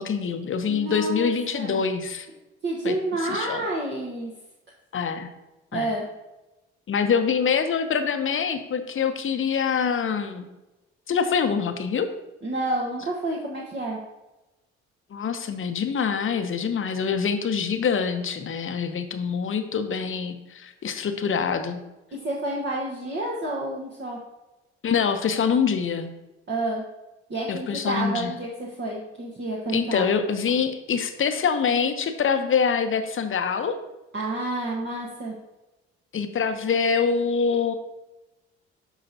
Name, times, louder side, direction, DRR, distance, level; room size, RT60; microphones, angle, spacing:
voice 1, 0.0-2.3 2.8-3.6 4.9-5.3 5.7-5.9 6.9-10.5 11.1-12.1 15.1-21.8 24.8-26.1 27.5-28.3 29.7-33.8 36.1-37.7, left 6 dB, 40° left, 7 dB, 1.0 m, -25 dB
voice 2, 0.7-1.8 2.6-4.3 5.7-6.0 12.4-14.0 22.2-24.2 26.5-26.8 27.3-30.1 34.1-35.3, right 2 dB, 35° right, -3 dB, 1.4 m, -29 dB
11.5 x 5.0 x 2.9 m, 1.0 s
figure-of-eight pair, 45°, 33 cm